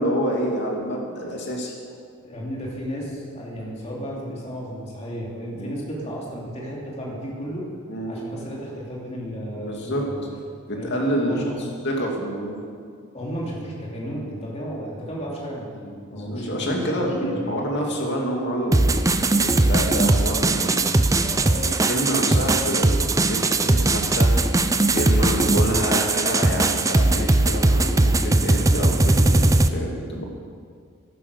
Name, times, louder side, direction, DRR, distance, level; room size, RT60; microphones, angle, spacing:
voice 1, 0.0-1.7 3.5-3.8 5.5-5.7 7.9-8.1 9.6-10.1 10.7-11.4 11.8-12.6 16.1-18.9 19.3-20.8 21.4-24.5 24.9-30.2, equal, 50° left, -1 dB, 2.6 m, -27 dB
voice 2, 2.2-7.6 8.1-10.2 10.7-10.9 11.3-11.5 13.1-16.9 17.2-17.6 20.1-20.3 21.2-21.9, equal, 30° left, -4 dB, 3.0 m, -33 dB
sound 1, 18.7-29.7, right 2 dB, 15° right, 0.4 m, -19 dB
11.0 x 11.0 x 6.8 m, 2.1 s
head